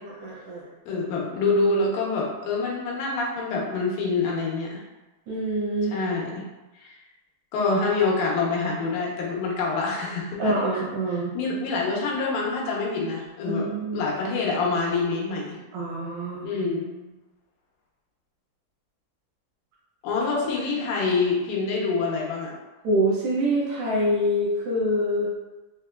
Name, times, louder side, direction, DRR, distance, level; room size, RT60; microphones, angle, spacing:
voice 1, 0.0-0.7 5.3-5.9 10.4-11.3 13.5-14.0 15.7-16.5 22.8-25.3, equal, 75° right, -5 dB, 1.7 m, -25 dB
voice 2, 0.9-4.8 5.9-6.4 6.8-7.0 7.5-10.8 11.1-15.6 16.4-17.1 20.0-22.5, left 3 dB, 85° left, -3 dB, 2.5 m, -26 dB
5.9 x 2.1 x 2.2 m, 1.1 s
omnidirectional pair, 4.0 m